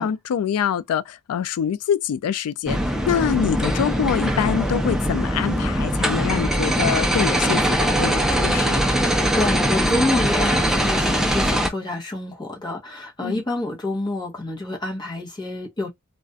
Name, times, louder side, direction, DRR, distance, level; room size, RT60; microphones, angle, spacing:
voice 1, 0.0-2.8 3.1-8.8 13.2-13.4, left 8 dB, 90° left, 0.3 m, -25 dB
sound 1, 2.7-11.7, equal, ahead, 0.3 m, -21 dB
voice 2, 9.3-15.9, left 2 dB, 20° left, 0.8 m, -27 dB
2.4 x 2.1 x 2.5 m
head